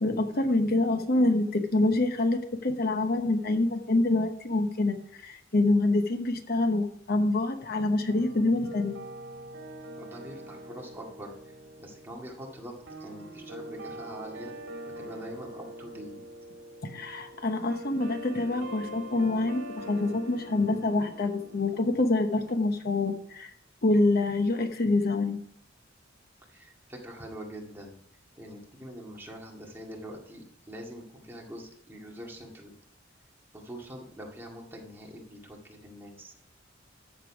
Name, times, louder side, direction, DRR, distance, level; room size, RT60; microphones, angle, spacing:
voice 1, 0.0-9.0 16.8-23.5 23.8-25.4, left 2 dB, 50° left, 7 dB, 0.9 m, -26 dB
sound 1, 8.1-22.5, right 1 dB, 70° right, 2.1 m, -44 dB
voice 2, 10.0-11.3 11.8-14.5 15.0-16.1 26.5-28.0 28.4-32.7 33.5-36.3, equal, 10° right, -1 dB, 1.9 m, -44 dB
13.0 x 6.7 x 4.9 m, 0.67 s
head